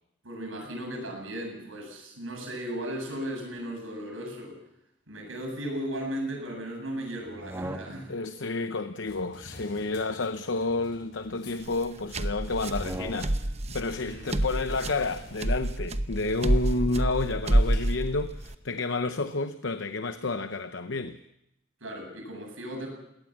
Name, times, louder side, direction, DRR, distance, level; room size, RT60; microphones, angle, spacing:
voice 1, 0.2-4.6 5.1-8.1 14.1-14.3 21.8-22.9, right 1 dB, 90° right, 7.7 m, -36 dB
sound 1, 7.2-8.3 9.6-11.3 12.6-13.6, right 1 dB, 15° right, 1.4 m, -42 dB
voice 2, 8.1-21.2, left 3 dB, 70° left, 0.8 m, -30 dB
sound 2, 9.0-18.8, left 2 dB, 55° left, 4.0 m, -51 dB
sound 3, 11.6-18.5, right 1 dB, 35° right, 0.9 m, -28 dB
21.0 x 18.0 x 7.4 m
head